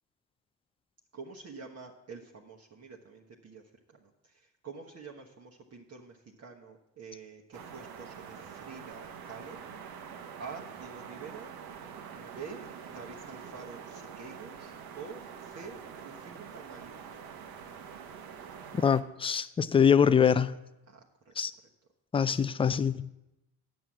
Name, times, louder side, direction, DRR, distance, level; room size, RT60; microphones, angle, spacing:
voice 1, 1.1-3.6 4.0-4.1 4.6-9.6 10.4-11.5 12.1-12.7 12.9-17.0 20.9-21.3, right 4 dB, 35° right, -1 dB, 1.2 m, -47 dB
sound 1, 7.5-19.0, right 7 dB, 60° right, 1.1 m, -45 dB
voice 2, 18.8-20.5 21.4-21.5 22.1-23.1, left 7 dB, 15° left, 15 dB, 0.4 m, -24 dB
8.5 x 6.2 x 7.2 m, 0.92 s
hypercardioid pair, 65°, 43 cm